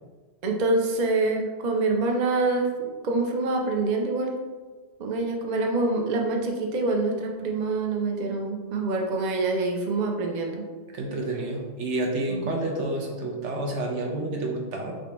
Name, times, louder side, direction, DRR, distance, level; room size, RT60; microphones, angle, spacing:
voice 1, 0.4-4.4 5.0-10.6 12.3-12.5, right 3 dB, 50° right, 1 dB, 0.6 m, -26 dB
voice 2, 10.9-14.9, right 2 dB, 75° right, 0 dB, 1.1 m, -29 dB
5.4 x 2.7 x 3.4 m, 1.4 s
omnidirectional pair, 1.2 m